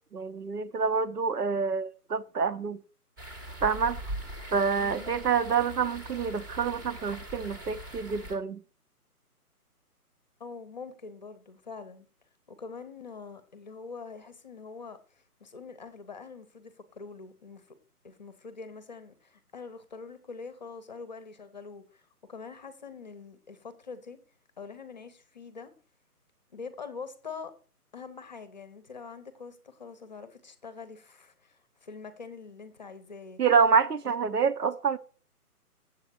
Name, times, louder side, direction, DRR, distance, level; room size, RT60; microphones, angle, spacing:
voice 1, 0.1-2.8 3.6-4.0 4.5-8.6 33.4-35.0, right 5 dB, 80° right, 0.9 m, -27 dB
sound 1, 3.2-8.4, right 1 dB, 15° right, 0.8 m, -41 dB
voice 2, 4.8-5.2 10.4-12.1 12.5-17.7 18.0-24.2 24.6-25.7 26.5-27.5 27.9-33.4, left 4 dB, 30° left, 0.7 m, -44 dB
7.7 x 7.2 x 4.3 m
figure-of-eight pair, 145°, 46 cm